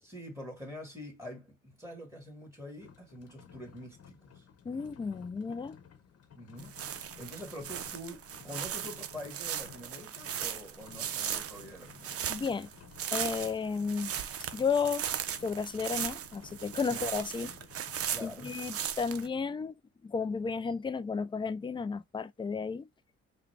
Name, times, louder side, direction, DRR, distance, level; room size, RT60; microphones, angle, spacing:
voice 1, 0.0-4.9 6.3-6.7 7.2-12.3 16.9-17.0 18.1-18.5, equal, 10° right, 1.9 m, -46 dB
sound 1, 2.8-18.4, left 8 dB, 55° left, 1.0 m, -55 dB
voice 2, 4.6-5.8 12.3-12.7 13.1-14.1 14.5-15.1 15.4-17.5 18.2-19.8 20.0-22.9, left 5 dB, 15° left, 0.3 m, -33 dB
sound 2, 6.6-19.3, right 9 dB, 50° right, 0.6 m, -38 dB
4.9 x 2.2 x 3.3 m
cardioid pair, 90°, 30 cm